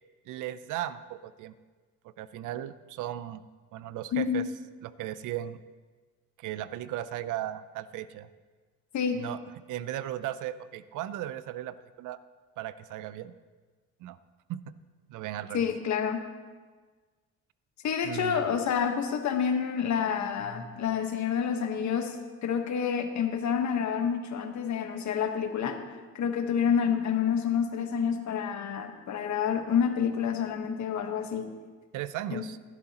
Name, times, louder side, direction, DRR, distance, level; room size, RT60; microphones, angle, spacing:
voice 1, 0.3-1.5 2.2-3.4 3.7-4.4 4.8-5.6 6.4-8.3 9.1-9.4 9.7-12.2 12.6-13.4 14.0-14.2 14.5-14.7 15.1-15.6 18.0-18.5 31.9-32.6, right 12 dB, 85° right, 15 dB, 0.6 m, -36 dB
voice 2, 4.1-4.4 8.9-9.2 15.5-16.2 17.8-22.2 22.4-25.8 26.1-31.5 32.3-32.4, left 7 dB, 70° left, 6 dB, 1.3 m, -28 dB
15.5 x 11.5 x 2.9 m, 1.4 s
cardioid pair, 90°, 30 cm